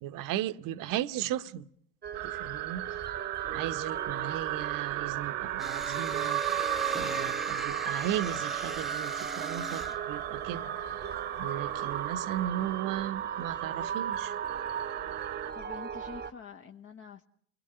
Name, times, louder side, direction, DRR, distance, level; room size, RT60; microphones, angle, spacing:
voice 1, 0.0-1.7 2.2-2.8 3.5-10.8 11.4-14.3, right 12 dB, 60° right, 1.0 m, -36 dB
sound 1, 2.0-16.3, right 7 dB, 25° right, 1.0 m, -38 dB
sound 2, 2.1-15.5, right 18 dB, 80° right, 1.3 m, -36 dB
sound 3, 5.6-10.0, right 1 dB, ahead, 0.9 m, -39 dB
voice 2, 15.5-17.2, left 6 dB, 35° left, 1.1 m, -46 dB
29.0 x 19.0 x 6.8 m
hypercardioid pair, 85°, 38 cm